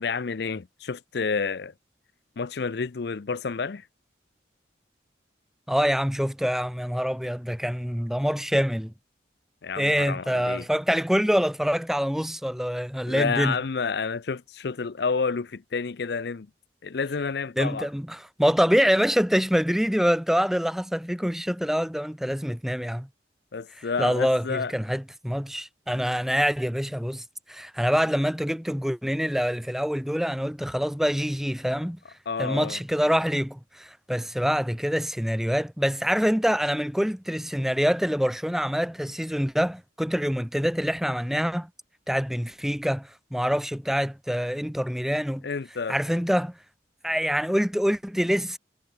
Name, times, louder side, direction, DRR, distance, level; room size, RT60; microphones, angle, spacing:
voice 1, 0.0-1.7 2.4-3.9 9.6-10.6 13.1-16.5 16.8-17.9 23.5-24.7 32.3-32.8 45.4-46.0, left 5 dB, 65° left, 0.5 m, -29 dB
voice 2, 5.7-8.9 9.8-13.6 17.6-23.1 23.8-32.0 32.4-41.7 42.1-45.5 45.9-46.6 47.0-48.6, equal, ahead, 0.9 m, -25 dB
head